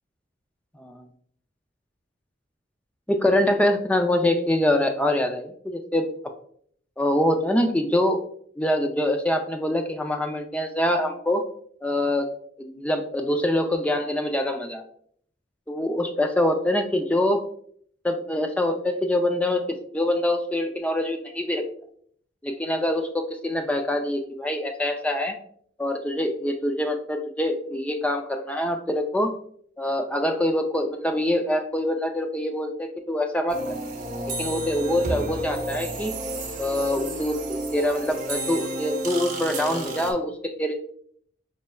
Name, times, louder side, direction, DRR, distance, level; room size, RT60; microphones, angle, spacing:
voice 1, 3.1-6.1 7.0-8.2 8.6-11.5 11.8-12.3 12.6-14.9 15.7-17.4 18.0-21.7 22.4-25.4 25.8-29.3 29.8-33.6 34.4-36.2 36.6-40.8, left 1 dB, 5° left, 5 dB, 0.3 m, -25 dB
sound 1, 33.5-40.1, right 1 dB, 45° right, 0.7 m, -31 dB
5.3 x 3.2 x 2.2 m, 0.62 s
head